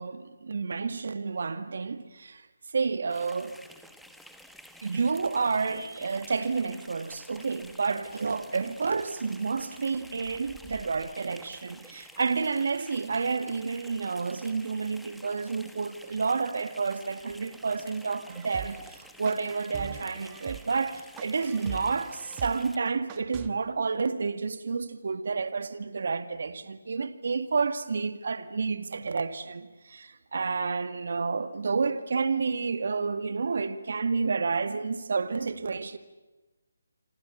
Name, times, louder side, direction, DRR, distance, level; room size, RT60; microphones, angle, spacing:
voice 1, 0.0-2.4 2.7-3.5 4.8-36.0, right 4 dB, 60° right, 2.1 m, -30 dB
sound 1, 3.1-22.8, equal, ahead, 1.3 m, -51 dB
sound 2, 18.3-23.5, right 12 dB, 20° right, 1.4 m, -42 dB
27.5 x 26.5 x 7.3 m
figure-of-eight pair, 155°, 0 cm